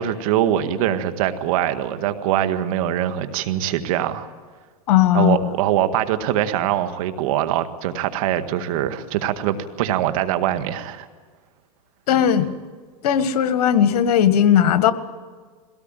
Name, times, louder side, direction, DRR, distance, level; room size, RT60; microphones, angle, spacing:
voice 1, 0.0-4.3 5.1-11.1, right 11 dB, 60° right, 9 dB, 1.9 m, -23 dB
voice 2, 4.9-5.5 12.1-12.5 13.0-14.9, left 9 dB, 70° left, 11 dB, 1.6 m, -17 dB
22.0 x 18.0 x 9.1 m, 1.5 s
hypercardioid pair, 125°, 20 cm